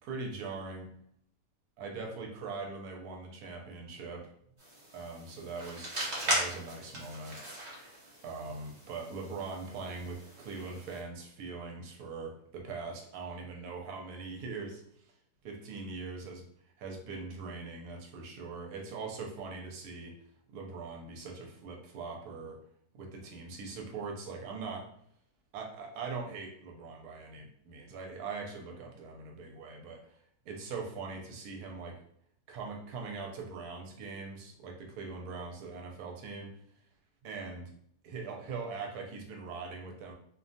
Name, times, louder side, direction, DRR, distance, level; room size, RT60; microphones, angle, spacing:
voice 1, 0.0-0.9 1.8-4.3 4.9-5.9 6.3-7.4 8.2-15.1 15.4-16.4 16.8-20.2 20.5-22.6 22.9-24.9 25.5-32.0 32.5-36.5 37.2-37.7 38.0-40.1, right 4 dB, 85° right, 1 dB, 1.1 m, -41 dB
sound 1, 4.6-11.0, right 1 dB, 40° right, 0.6 m, -38 dB
2.6 x 2.2 x 2.6 m, 0.69 s
omnidirectional pair, 1.6 m